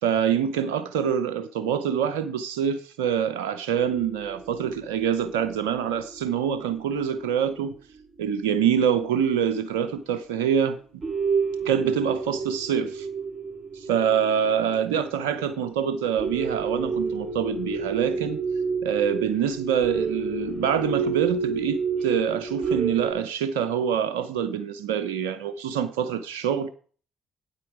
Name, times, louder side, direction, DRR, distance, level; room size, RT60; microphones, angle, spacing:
voice 1, 0.0-7.7 8.2-10.8 11.6-13.1 13.7-18.4 18.8-26.7, right 8 dB, 85° right, 0.6 m, -25 dB
sound 1, 3.8-7.7 8.2-8.3 9.3-9.4 10.0-10.1 10.5-10.7 11.0-23.1, right 5 dB, 40° right, 3.9 m, -30 dB
8.8 x 8.4 x 4.9 m
hypercardioid pair, 50°, 0 cm